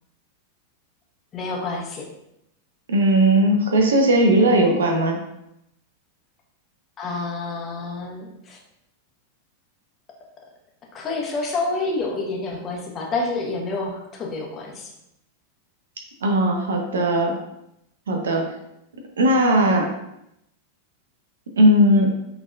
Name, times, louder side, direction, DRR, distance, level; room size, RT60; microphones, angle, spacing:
voice 1, 1.3-2.1 7.0-8.6 10.9-14.9, left 3 dB, 25° left, -1 dB, 1.0 m, -28 dB
voice 2, 2.9-5.2 16.2-17.3 18.1-18.5 19.2-19.9 21.6-22.1, right 1 dB, 65° right, 2 dB, 0.8 m, -18 dB
6.2 x 3.4 x 2.5 m, 0.82 s
figure-of-eight pair, 90°, 0 cm